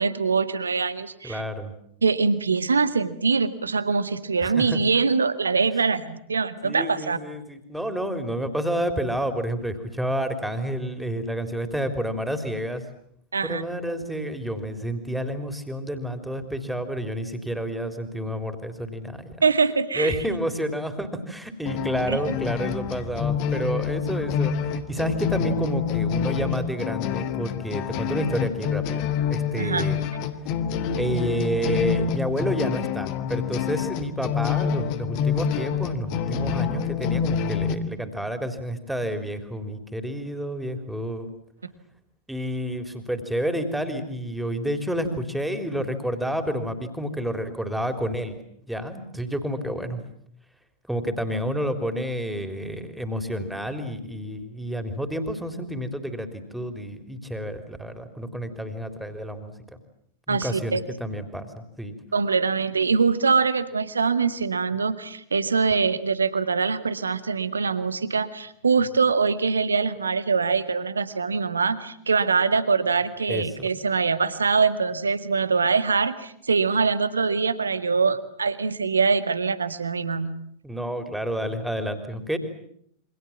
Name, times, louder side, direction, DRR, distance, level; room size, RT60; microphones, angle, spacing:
voice 1, 0.0-1.4 2.0-7.2 13.3-13.6 19.4-20.2 22.1-22.3 29.6-29.9 60.3-60.8 62.1-80.3, right 5 dB, 75° right, 13 dB, 1.9 m, -23 dB
voice 2, 1.2-1.7 4.4-4.8 6.6-12.9 13.4-19.4 19.9-29.0 29.3-30.0 31.0-41.3 42.3-48.4 48.7-50.0 50.9-59.5 60.3-62.0 73.3-73.7 80.6-82.4, equal, 5° right, 9 dB, 3.7 m, -29 dB
sound 1, 21.7-37.7, left 7 dB, 45° left, 2.1 m, -27 dB
28.5 x 25.0 x 7.4 m, 0.68 s
figure-of-eight pair, 90°, 0 cm